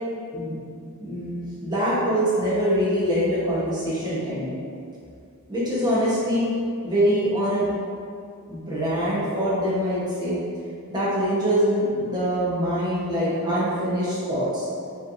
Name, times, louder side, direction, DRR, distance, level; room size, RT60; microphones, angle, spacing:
voice 1, 1.0-4.5 5.5-6.5 6.8-7.7 8.5-10.4 10.9-14.7, equal, 20° right, -9 dB, 1.2 m, -24 dB
5.2 x 3.4 x 2.7 m, 2.3 s
head